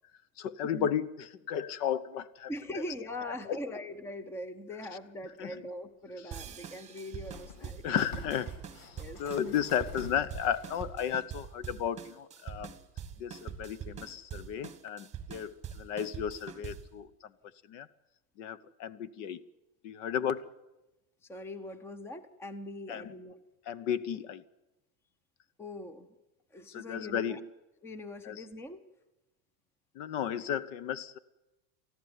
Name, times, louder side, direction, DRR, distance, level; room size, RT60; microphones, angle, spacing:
voice 1, 0.4-2.5 3.5-3.6 5.4-5.6 7.8-8.5 8.8-12.7 13.2-17.3 17.7-17.9 18.4-19.4 19.8-20.5 22.9-23.1 23.7-24.4 26.7-27.5 28.2-28.4 29.9-31.2, left 9 dB, 55° left, 18 dB, 1.0 m, -34 dB
voice 2, 2.5-8.1 9.0-9.2 21.2-23.4 25.6-26.1 26.5-27.4 27.8-28.8, left 1 dB, 5° left, 13 dB, 0.6 m, -42 dB
sound 1, 5.4-5.5 7.1-11.1 11.8-11.9, left 2 dB, 85° left, 5.7 m, -48 dB
sound 2, 6.3-17.0, right 8 dB, 15° right, 1.3 m, -44 dB
20.0 x 14.0 x 9.6 m, 1.0 s
supercardioid pair, 155°, 43 cm